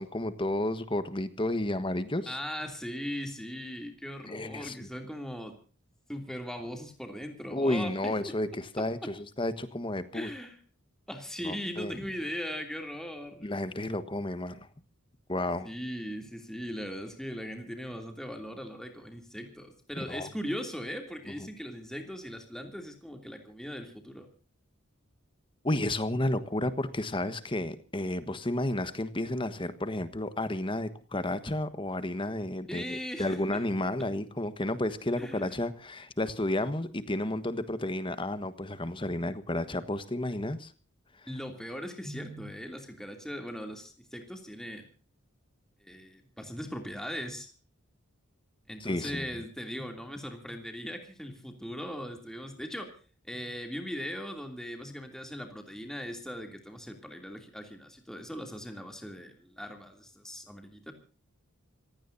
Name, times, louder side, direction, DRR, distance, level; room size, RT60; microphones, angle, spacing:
voice 1, 0.0-2.4 4.2-4.9 7.5-10.3 11.4-12.0 13.4-14.7 15.3-15.7 20.0-20.3 25.6-40.7 48.8-49.3, left 1 dB, 25° left, 12 dB, 1.4 m, -32 dB
voice 2, 2.3-5.6 6.1-8.3 8.8-9.1 10.1-10.6 11.1-13.5 15.6-24.3 32.7-33.6 35.2-35.6 41.3-44.9 45.8-47.5 48.7-53.0 53.2-60.9, equal, 5° left, 4 dB, 2.9 m, -39 dB
26.5 x 17.0 x 2.7 m, 0.36 s
head